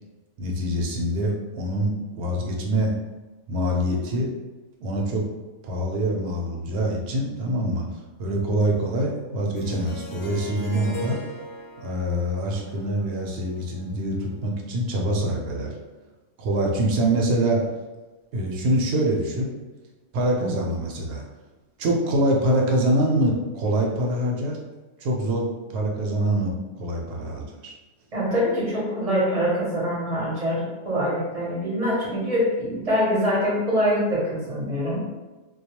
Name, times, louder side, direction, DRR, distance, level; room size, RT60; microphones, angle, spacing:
voice 1, 0.4-2.9 3.5-4.3 4.8-5.2 5.6-7.9 8.2-11.2 11.8-15.7 16.4-17.7 18.3-19.5 20.1-21.2 21.8-24.6 25.0-27.7, right 1 dB, 70° right, 0 dB, 0.8 m, -25 dB
Harp, 9.5-14.5, equal, 70° left, 0.8 m, -40 dB
voice 2, 28.1-35.0, equal, 35° right, -5 dB, 0.7 m, -24 dB
2.3 x 2.2 x 2.8 m, 1.2 s
omnidirectional pair, 1.2 m